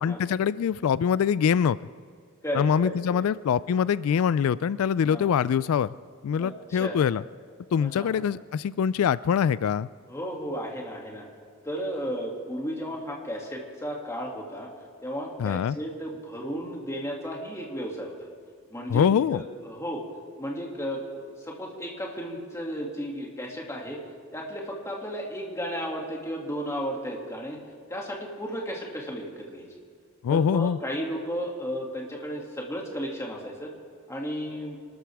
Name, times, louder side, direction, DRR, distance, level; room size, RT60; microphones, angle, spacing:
voice 1, 0.0-1.8 2.5-5.9 6.2-7.2 7.7-9.9 15.4-15.8 18.9-19.4 30.2-30.8, left 7 dB, 85° left, 17 dB, 0.3 m, -24 dB
voice 2, 2.4-3.2 5.0-5.3 6.4-7.0 7.8-8.2 10.1-11.3 11.6-14.7 15.0-18.1 18.7-20.0 20.4-24.0 24.3-27.6 27.9-29.7 30.3-33.7 34.1-34.8, equal, 15° left, -1 dB, 2.3 m, -34 dB
25.5 x 13.5 x 3.5 m, 2.2 s
head